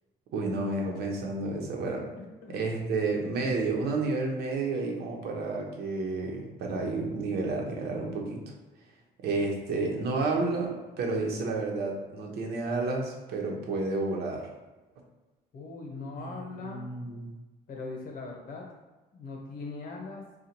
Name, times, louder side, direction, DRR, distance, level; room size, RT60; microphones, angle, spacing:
voice 1, 0.3-2.0 2.5-8.5 9.2-10.7 11.0-14.5 16.2-17.3, right 3 dB, 70° right, 1 dB, 1.0 m, -31 dB
voice 2, 15.5-16.8 17.7-18.7 19.1-20.2, left 3 dB, 60° left, 0 dB, 1.1 m, -40 dB
3.8 x 2.4 x 4.4 m, 1.2 s
cardioid pair, 110°, 17 cm